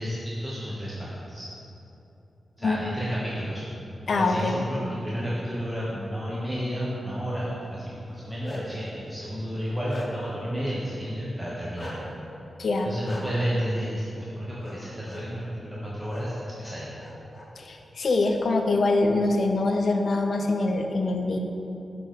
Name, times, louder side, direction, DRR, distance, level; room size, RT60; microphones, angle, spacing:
voice 1, 0.0-1.5 2.6-3.6 4.1-12.0 12.8-16.9, equal, 10° right, -7 dB, 1.1 m, -31 dB
voice 2, 4.1-4.6 12.6-12.9 17.6-21.4, left 2 dB, 65° left, 4 dB, 0.5 m, -24 dB
Bark, 8.1-8.9 9.4-10.4 11.8-12.0 13.0-13.2 14.6-14.8 15.1-15.2 16.1-16.2 16.6-17.5, left 1 dB, 35° left, 1.0 m, -40 dB
6.2 x 3.8 x 4.9 m, 2.9 s
cardioid pair, 50°, 0 cm